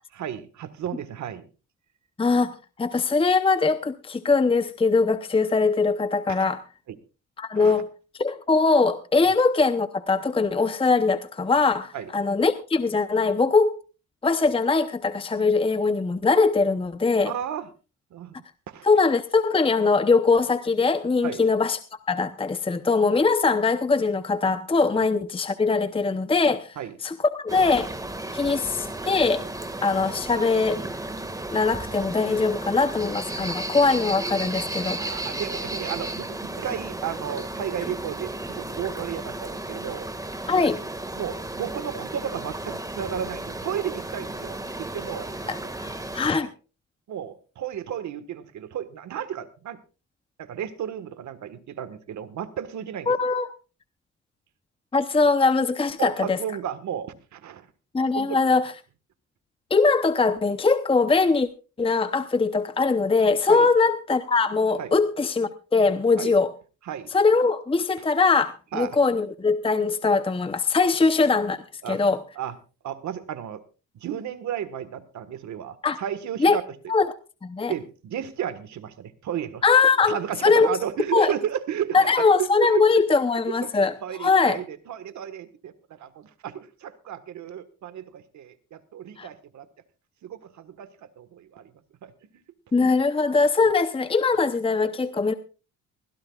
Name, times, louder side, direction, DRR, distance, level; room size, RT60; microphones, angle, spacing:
voice 1, 0.1-1.5 6.3-6.4 6.9-7.0 7.5-7.8 11.9-12.1 17.2-17.7 18.1-18.4 18.7-18.9 21.2-21.4 26.8-27.0 28.3-28.6 35.0-40.1 41.2-45.3 45.6-45.7 46.3-46.5 47.1-49.8 50.4-53.1 56.0-57.7 58.1-58.4 63.5-63.7 64.8-64.9 66.2-66.3 66.8-67.2 68.0-68.1 68.7-69.0 71.0-71.1 71.8-72.0 72.3-72.6 72.8-73.6 73.9-76.6 77.7-79.6 80.0-82.8 83.5-89.7 90.2-91.7 92.0-92.1, right 9 dB, 70° right, 12 dB, 1.6 m, -33 dB
voice 2, 2.2-2.5 2.8-6.6 7.4-7.9 8.2-13.8 14.2-17.3 18.8-21.8 22.1-26.7 27.0-27.9 28.3-29.4 29.8-30.8 31.5-35.0 40.5-40.8 45.5-45.6 45.8-46.5 53.1-53.5 54.9-56.4 57.9-58.7 59.7-61.5 61.8-66.5 67.1-71.6 71.9-72.2 75.8-76.0 76.4-76.6 76.9-77.1 77.4-77.7 79.6-80.2 80.4-80.8 81.1-81.3 81.9-83.9 84.2-84.6 89.2-89.3 92.7-95.3, left 4 dB, 20° left, 11 dB, 0.8 m, -21 dB
sound 1, 27.5-46.3, right 2 dB, 10° right, 1.9 m, -34 dB
21.0 x 16.0 x 2.4 m, 0.34 s
cardioid pair, 90°, 30 cm